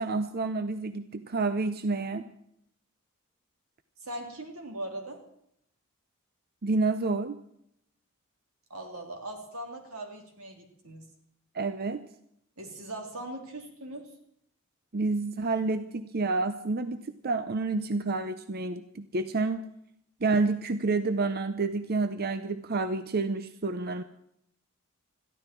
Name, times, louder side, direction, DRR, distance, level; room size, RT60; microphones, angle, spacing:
voice 1, 0.0-2.2 6.6-7.4 11.5-12.0 14.9-19.6 20.2-24.0, right 3 dB, 45° right, 11 dB, 0.7 m, -29 dB
voice 2, 4.0-5.2 8.7-11.0 12.6-14.1, right 1 dB, 85° right, 3 dB, 3.5 m, -40 dB
21.5 x 14.0 x 4.6 m, 0.73 s
head